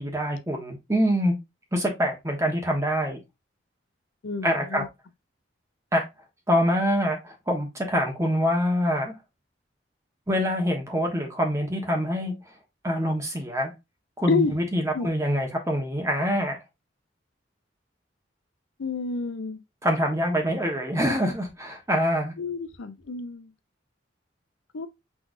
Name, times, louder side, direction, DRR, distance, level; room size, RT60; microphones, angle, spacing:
voice 1, 0.0-1.3 1.7-3.2 4.4-4.8 5.9-6.1 6.5-9.1 10.3-12.3 12.8-13.7 14.2-16.6 19.8-22.3, equal, 15° right, 1.2 m, -25 dB
voice 2, 4.2-4.9 14.3-14.5 14.9-15.1 18.8-19.6 22.4-23.5 24.7-24.9, left 4 dB, 85° left, 0.5 m, -29 dB
6.1 x 3.3 x 2.5 m
head